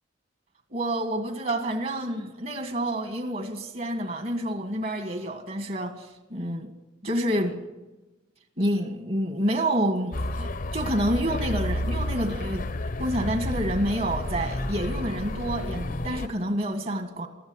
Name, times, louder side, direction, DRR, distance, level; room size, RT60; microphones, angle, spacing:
voice 1, 0.7-6.7 7.0-7.6 8.6-12.7 13.0-17.3, right 1 dB, 45° right, 5 dB, 1.9 m, -28 dB
sound 1, 10.1-16.3, left 1 dB, 45° left, 0.9 m, -31 dB
22.0 x 14.5 x 9.8 m, 1.1 s
head